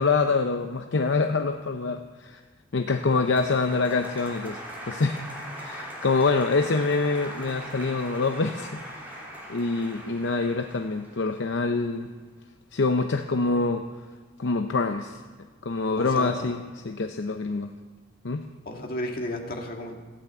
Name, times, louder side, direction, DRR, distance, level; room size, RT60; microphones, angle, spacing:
voice 1, 0.0-2.4 2.7-5.2 5.6-8.8 9.5-12.1 12.7-13.9 14.4-15.2 15.6-17.7 18.2-18.4, left 3 dB, 70° left, 6 dB, 0.7 m, -25 dB
Applause, 2.9-11.9, equal, 10° right, 3.3 m, -40 dB
voice 2, 16.0-16.4 18.7-20.0, left 1 dB, 50° left, 1 dB, 1.9 m, -33 dB
15.5 x 8.7 x 8.1 m, 1.3 s
head